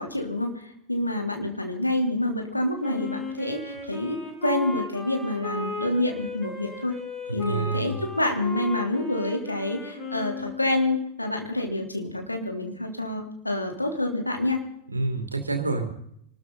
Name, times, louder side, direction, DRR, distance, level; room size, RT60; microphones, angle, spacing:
voice 1, 0.0-6.9 7.3-14.6, left 1 dB, 85° left, 3 dB, 3.1 m, -27 dB
Wind instrument woodwind instrument, 2.8-10.9, left 4 dB, 20° left, 5.7 m, -36 dB
voice 2, 7.5-8.0 14.9-15.8, right 3 dB, 80° right, 6 dB, 2.7 m, -27 dB
25.5 x 13.5 x 3.9 m, 0.71 s
figure-of-eight pair, 90°, 0 cm